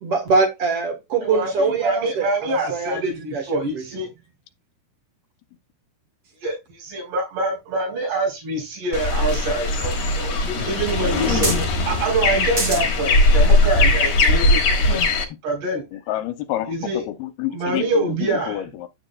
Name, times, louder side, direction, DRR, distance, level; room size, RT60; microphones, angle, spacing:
voice 1, 0.0-3.8, right 4 dB, 60° right, 1.6 m, -23 dB
voice 2, 1.3-4.1 6.4-15.0 15.4-15.8 16.7-17.0 17.5-18.6, right 2 dB, 85° right, 6.1 m, -25 dB
sound 1, 8.2-8.3 8.7-9.7 10.2-10.3 10.4-10.5 11.4-11.8 12.6-12.8 13.5-13.6, right 3 dB, 30° right, 1.6 m, -26 dB
sound 2, 8.9-15.2, left 2 dB, 55° left, 2.2 m, -19 dB
voice 3, 15.9-18.9, left 13 dB, 80° left, 2.5 m, -29 dB
9.6 x 9.0 x 2.3 m
omnidirectional pair, 4.6 m